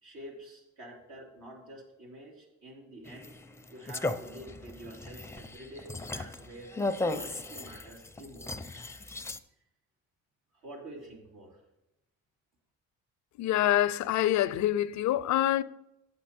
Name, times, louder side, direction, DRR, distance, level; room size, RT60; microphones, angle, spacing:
voice 1, 0.0-3.3 3.7-6.7 7.1-8.8 10.5-11.6, right 1 dB, 75° right, 3.1 m, -48 dB
sound 1, 3.0-9.4, left 2 dB, 10° left, 0.5 m, -37 dB
voice 2, 13.4-15.6, left 13 dB, 70° left, 0.5 m, -26 dB
9.7 x 7.5 x 4.3 m
cardioid pair, 90°, 30 cm